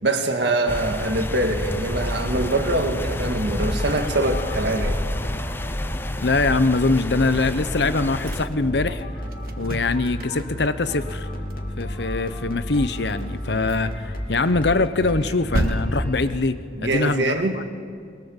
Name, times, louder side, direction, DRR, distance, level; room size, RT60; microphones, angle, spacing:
voice 1, 0.0-5.0 16.8-17.6, right 2 dB, 85° right, 5 dB, 1.9 m, -24 dB
sound 1, 0.7-8.5, left 1 dB, 15° left, 0.6 m, -30 dB
sound 2, 1.5-16.4, left 1 dB, 55° left, 2.9 m, -33 dB
voice 2, 6.2-9.0 9.6-11.3 11.8-17.3, left 3 dB, 75° left, 12 dB, 0.9 m, -23 dB
sound 3, 8.2-10.7 11.0-11.2 11.5-11.6 11.9-12.0 12.7-14.1 14.5-16.9, right 1 dB, 55° right, 1.6 m, -32 dB
23.0 x 22.0 x 7.3 m, 2.3 s
head